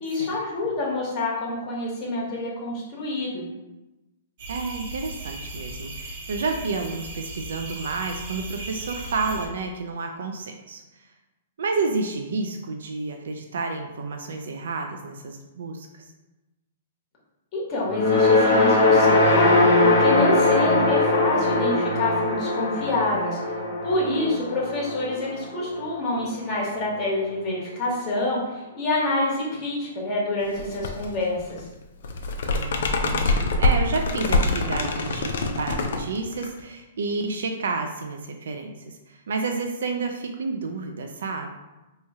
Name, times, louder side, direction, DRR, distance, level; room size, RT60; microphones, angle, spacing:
voice 1, 0.0-3.4 17.5-23.4 23.8-31.7, left 2 dB, 30° left, -4 dB, 1.2 m, -27 dB
sound 1, 4.4-9.5, right 2 dB, 55° right, 0.9 m, -37 dB
voice 2, 4.5-10.8 11.6-16.1 32.4-41.5, right 4 dB, 80° right, 3 dB, 0.4 m, -30 dB
sound 2, 17.9-26.2, left 2 dB, 50° left, 0.8 m, -21 dB
sound 3, 30.5-31.1 31.4-36.6, left 2 dB, 70° left, 0.4 m, -25 dB
3.1 x 2.3 x 4.1 m, 1.0 s
hypercardioid pair, 155°, 0 cm